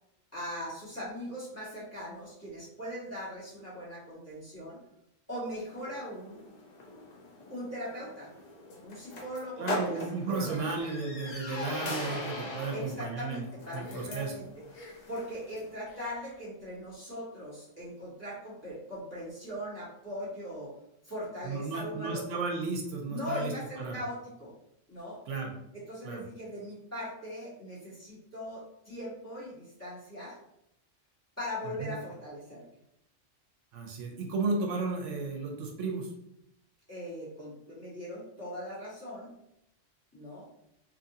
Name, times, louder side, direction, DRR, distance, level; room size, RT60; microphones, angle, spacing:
voice 1, 0.3-4.8 5.3-6.4 7.5-8.3 8.8-10.7 12.7-14.5 15.1-20.7 21.0-22.4 23.1-24.5 24.9-25.2 25.7-30.4 31.4-32.6 36.9-39.3 40.1-40.5, equal, 15° left, -10 dB, 1.2 m, -40 dB
sound 1, 5.7-15.7, left 2 dB, 45° left, 0.6 m, -41 dB
voice 2, 9.6-14.3 21.4-24.0 25.3-25.5 26.0-26.3 31.8-32.0 33.7-36.1, right 3 dB, 80° right, 1 dB, 0.9 m, -34 dB
sound 2, 10.5-11.8 12.5-12.9 13.8-14.3 14.7-15.2 15.8-16.4, left 2 dB, 85° left, 1.0 m, -49 dB
2.8 x 2.5 x 2.6 m, 0.78 s
omnidirectional pair, 1.3 m